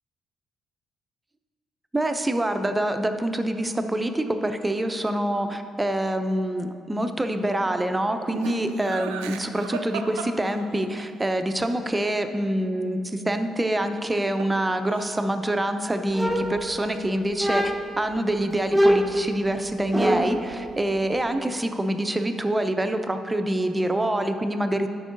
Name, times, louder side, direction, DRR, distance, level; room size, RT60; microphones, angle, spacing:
voice 1, 1.9-24.9, right 1 dB, 20° right, 7 dB, 0.6 m, -26 dB
Laughter, 8.3-11.0 13.8-14.6 14.9-15.4, right 6 dB, 75° right, 0.4 m, -35 dB
sound 1, 16.1-17.0 17.4-18.0 18.7-20.5, equal, ahead, 1.0 m, -23 dB
13.5 x 6.1 x 2.6 m, 2.4 s
figure-of-eight pair, 40°, 0 cm